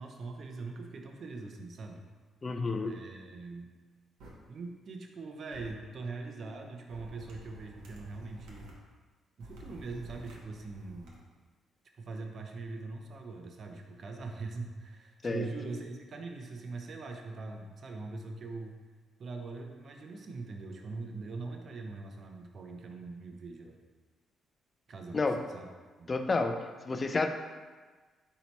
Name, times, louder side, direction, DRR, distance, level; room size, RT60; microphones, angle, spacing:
voice 1, 0.0-2.1 2.8-3.7 4.5-8.7 9.4-11.2 12.0-18.8 19.2-23.8 24.9-25.7 26.0-26.2, right 3 dB, 50° right, 3 dB, 0.6 m, -42 dB
voice 2, 2.4-3.0 15.2-15.5 25.1-25.4 26.1-27.3, left 3 dB, 35° left, 6 dB, 0.4 m, -30 dB
sound 1, 4.2-4.3 5.5-5.7 6.9-8.7 9.4-11.1, equal, 90° right, 0.8 m, -50 dB
4.0 x 2.8 x 4.5 m, 1.4 s
cardioid pair, 90°, 0 cm